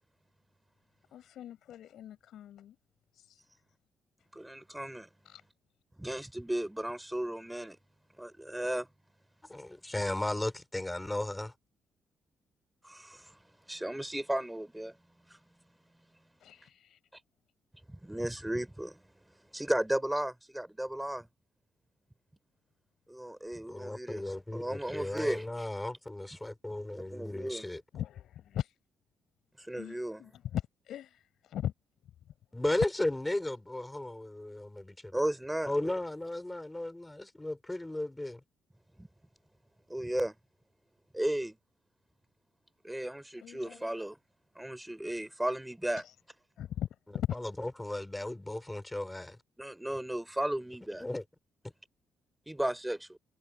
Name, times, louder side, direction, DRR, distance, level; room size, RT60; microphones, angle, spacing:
voice 1, 1.1-2.8 3.1-3.4 5.2-5.4 16.4-17.0 27.9-28.7 29.8-31.7 43.4-43.8 46.0-46.1 46.6-47.4, left 11 dB, 75° left, 4.6 m, -39 dB
voice 2, 4.3-5.1 6.0-7.8 8.2-8.9 12.8-13.4 13.7-15.0 15.3-15.4 17.9-19.0 19.5-21.3 23.1-24.2 24.5-25.4 27.1-27.7 29.6-30.2 35.1-35.7 39.0-39.1 39.9-40.4 41.1-41.6 42.8-44.2 44.6-46.0 49.6-51.0 52.5-53.2, right 1 dB, 5° right, 4.3 m, -34 dB
voice 3, 9.5-11.5 23.7-27.8 32.5-35.2 35.7-38.4 47.3-49.4 51.0-51.2, left 1 dB, 10° left, 4.9 m, -35 dB
cardioid pair, 90°, 0 cm